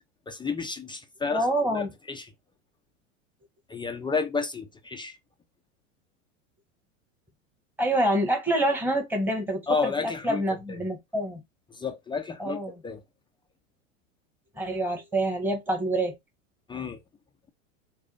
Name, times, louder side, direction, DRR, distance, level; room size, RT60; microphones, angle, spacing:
voice 1, 0.3-2.3 3.7-5.2 9.7-10.4 10.7-10.8 11.7-13.0 16.7-17.0, left 5 dB, 10° left, 0.5 m, -31 dB
voice 2, 1.3-1.9 7.8-11.4 12.4-12.7 14.6-16.1, right 1 dB, 5° right, 1.5 m, -26 dB
4.9 x 2.4 x 3.9 m
hypercardioid pair, 100°, 40 cm